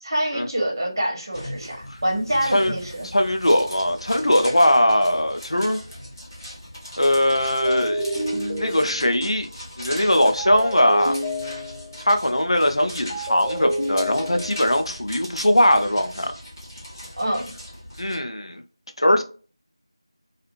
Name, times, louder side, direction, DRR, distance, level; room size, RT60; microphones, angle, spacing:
voice 1, 0.0-3.1 17.2-17.5, right 1 dB, 45° right, 1.0 m, -26 dB
sound 1, 1.3-18.2, equal, 35° left, 1.2 m, -39 dB
voice 2, 3.1-5.8 7.0-8.2 8.4-9.5 9.8-11.2 12.0-16.3 18.0-18.6 19.0-19.2, left 1 dB, 90° left, 0.5 m, -20 dB
sound 2, 7.6-9.3 10.4-12.1 13.1-14.8, equal, 10° left, 0.3 m, -29 dB
2.4 x 2.4 x 2.9 m
figure-of-eight pair, 170°, 3 cm